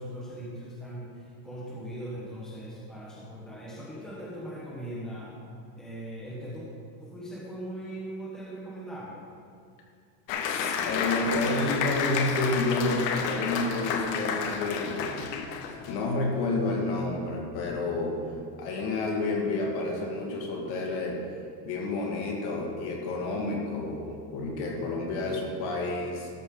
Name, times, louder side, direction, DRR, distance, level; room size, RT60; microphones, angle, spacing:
voice 1, 0.0-5.4 5.8-6.6 7.0-9.3, right 1 dB, ahead, -6 dB, 1.1 m, -40 dB
Applause, 10.3-16.0, left 6 dB, 80° left, 1.1 m, -31 dB
voice 2, 10.4-15.3 15.9-18.2 18.6-21.2 21.6-24.1 24.3-26.3, left 2 dB, 50° left, 0 dB, 2.0 m, -30 dB
13.0 x 6.3 x 3.8 m, 2.3 s
supercardioid pair, 155°, 48 cm